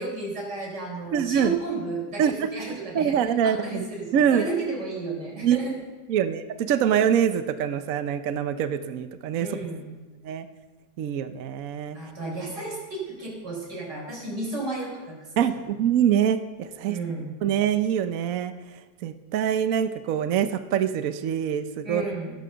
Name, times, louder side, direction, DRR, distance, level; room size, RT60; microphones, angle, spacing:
voice 1, 0.0-3.2 3.4-5.8 9.4-9.8 11.9-15.3 16.9-17.3 21.8-22.3, right 3 dB, 80° right, -3 dB, 5.2 m, -33 dB
voice 2, 1.1-1.6 2.2-2.5 2.8-3.9 4.1-4.5 5.4-5.6 6.1-9.6 10.2-10.5 11.0-12.0 15.4-17.0 17.4-18.5 19.0-22.1, right 9 dB, 60° right, 10 dB, 1.0 m, -24 dB
15.0 x 11.5 x 6.8 m, 1.3 s
omnidirectional pair, 1.8 m